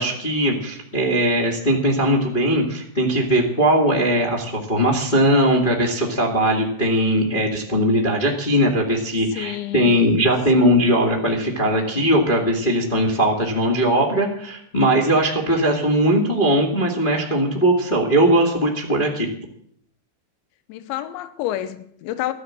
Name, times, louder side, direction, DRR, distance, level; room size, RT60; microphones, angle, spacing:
voice 1, 0.0-19.3, right 1 dB, 45° left, 0.6 m, -19 dB
voice 2, 9.4-10.3 10.6-11.0 20.7-22.3, left 13 dB, 80° left, 3.1 m, -30 dB
15.0 x 12.0 x 7.6 m
omnidirectional pair, 5.4 m